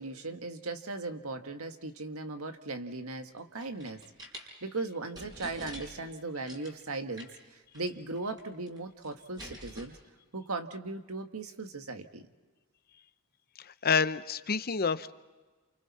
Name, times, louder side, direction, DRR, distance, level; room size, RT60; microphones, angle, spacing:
voice 1, 0.0-4.0 4.4-10.0 10.3-12.3, right 3 dB, 90° right, 6 dB, 1.7 m, -38 dB
sound 1, 3.4-4.5 4.9-5.0 5.2-6.1 6.5-6.8 7.2-7.5 7.7-7.9 8.2-8.8 9.0-9.9, equal, 20° right, 5.3 m, -46 dB
voice 2, 13.7-15.1, left 5 dB, 45° left, 13 dB, 0.8 m, -28 dB
29.0 x 28.5 x 4.3 m, 1.3 s
head